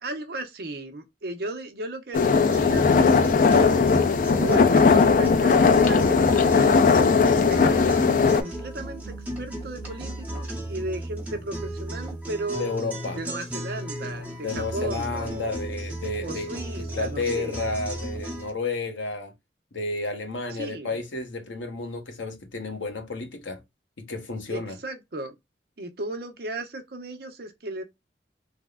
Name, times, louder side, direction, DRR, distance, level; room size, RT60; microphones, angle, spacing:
voice 1, 0.0-3.9 4.4-8.1 8.4-12.7 13.1-15.6 16.2-17.6 20.5-21.0 24.5-25.3 25.8-27.8, right 1 dB, 55° right, 0.7 m, -35 dB
sound 1, 2.1-8.4, left 5 dB, 45° left, 0.3 m, -18 dB
sound 2, 2.5-18.5, right 1 dB, 10° right, 0.9 m, -35 dB
voice 2, 12.6-13.2 14.4-19.3 19.7-23.6 24.0-24.8, left 3 dB, 90° left, 0.8 m, -31 dB
3.4 x 2.0 x 2.2 m
head